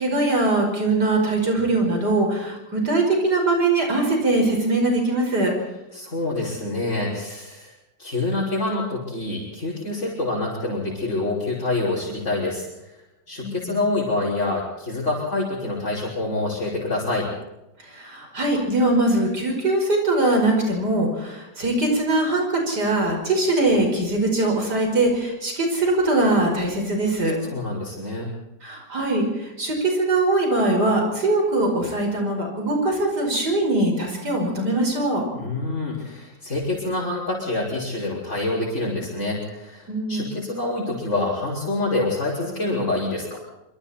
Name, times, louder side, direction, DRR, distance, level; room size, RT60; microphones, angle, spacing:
voice 1, 0.0-5.5 13.4-13.8 17.8-27.5 28.6-35.2 39.9-40.3, right 2 dB, 65° right, 2 dB, 5.9 m, -22 dB
voice 2, 5.9-7.7 8.0-12.7 13.3-17.3 27.5-28.3 35.3-43.4, left 2 dB, 40° left, -6 dB, 6.3 m, -26 dB
26.5 x 26.0 x 4.4 m, 0.93 s
omnidirectional pair, 1.9 m